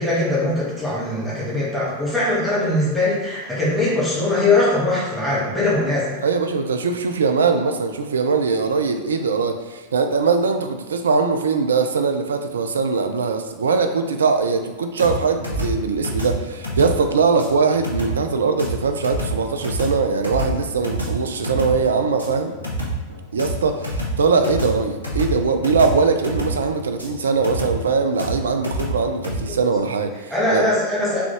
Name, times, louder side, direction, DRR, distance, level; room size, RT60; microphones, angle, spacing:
voice 1, 0.0-6.2 30.3-31.2, left 2 dB, 5° left, -9 dB, 1.4 m, -21 dB
voice 2, 6.2-22.5 23.3-30.7, right 4 dB, 70° right, 6 dB, 0.4 m, -21 dB
sound 1, 15.0-29.4, right 1 dB, 85° left, 0.9 m, -28 dB
3.6 x 3.5 x 3.5 m, 1.2 s
figure-of-eight pair, 90°, 0 cm